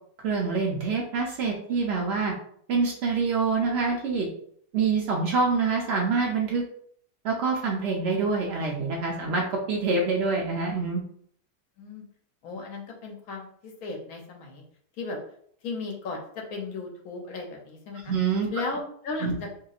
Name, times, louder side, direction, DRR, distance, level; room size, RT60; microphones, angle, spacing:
voice 1, 0.2-2.3 2.7-4.3 4.7-6.6 7.2-11.0 18.1-18.5 19.2-19.4, right 4 dB, 85° right, 0 dB, 0.5 m, -26 dB
voice 2, 12.4-14.6 15.0-15.2 15.6-18.1 18.5-19.5, left 3 dB, 70° left, 1 dB, 1.1 m, -35 dB
2.9 x 2.9 x 2.4 m, 0.63 s
omnidirectional pair, 1.7 m